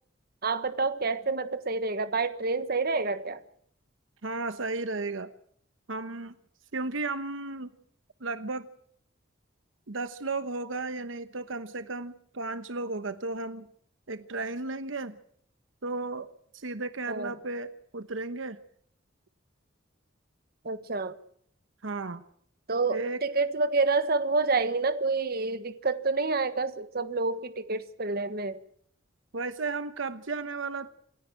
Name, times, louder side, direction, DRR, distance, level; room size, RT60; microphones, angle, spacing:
voice 1, 0.4-3.4 17.1-17.3 20.6-21.1 22.7-28.6, right 3 dB, 50° right, 12 dB, 1.4 m, -28 dB
voice 2, 4.2-5.3 5.9-6.4 6.7-7.7 8.2-8.7 9.9-13.7 14.1-15.2 15.8-18.6 21.8-22.2 22.9-23.2 29.3-30.9, right 3 dB, 80° right, 12 dB, 1.1 m, -34 dB
27.5 x 11.0 x 8.9 m, 0.65 s
head